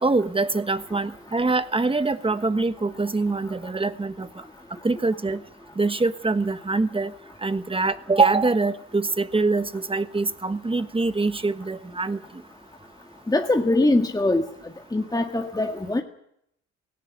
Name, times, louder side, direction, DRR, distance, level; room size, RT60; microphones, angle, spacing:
voice 1, 0.0-4.3 4.8-5.4 5.8-7.1 7.4-12.2, right 3 dB, 15° right, 12 dB, 1.4 m, -24 dB
voice 2, 13.3-14.4 14.9-16.0, left 2 dB, 10° left, 4 dB, 1.8 m, -22 dB
17.5 x 17.5 x 9.5 m, 0.73 s
cardioid pair, 90°, 30 cm